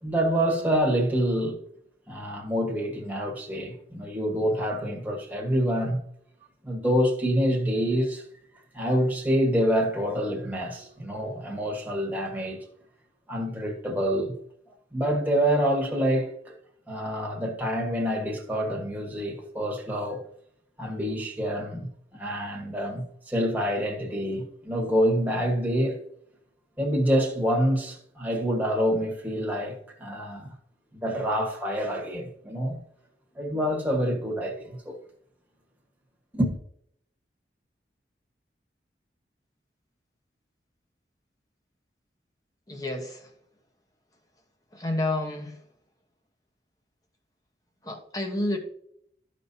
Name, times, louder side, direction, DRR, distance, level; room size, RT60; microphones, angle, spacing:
voice 1, 0.0-1.6 2.1-6.0 6.6-8.3 8.7-12.6 13.3-14.3 14.9-16.5 16.9-20.2 20.8-26.0 26.8-30.5 30.9-32.8 33.3-35.0 36.3-36.6, equal, 10° right, 1.4 m, -27 dB
voice 2, 42.7-43.3 44.7-45.7 47.8-48.6, left 1 dB, 20° left, 1.1 m, -30 dB
13.0 x 5.3 x 2.8 m
head